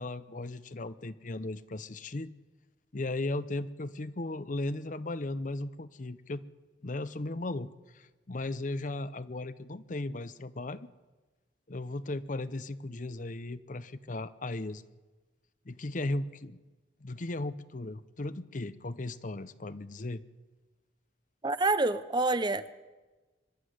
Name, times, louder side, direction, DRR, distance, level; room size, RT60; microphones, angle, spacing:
voice 1, 0.0-2.3 2.9-6.4 6.8-10.9 11.7-14.8 15.7-16.6 17.0-20.2, left 2 dB, 45° left, 15 dB, 0.7 m, -36 dB
voice 2, 21.4-22.7, right 2 dB, 25° right, 14 dB, 0.6 m, -27 dB
24.0 x 12.0 x 9.5 m, 1.2 s
head